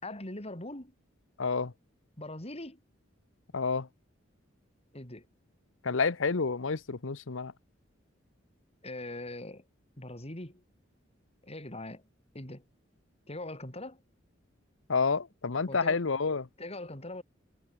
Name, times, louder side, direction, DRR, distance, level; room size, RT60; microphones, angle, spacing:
voice 1, 0.0-0.9 2.2-2.8 4.9-5.3 8.8-9.7 10.0-10.6 11.4-12.0 12.3-12.6 13.3-14.0 15.7-16.0 16.6-17.2, left 1 dB, 30° left, 5.2 m, -41 dB
voice 2, 1.4-1.7 3.5-3.9 5.8-7.5 14.9-16.5, left 4 dB, 85° left, 0.9 m, -29 dB
head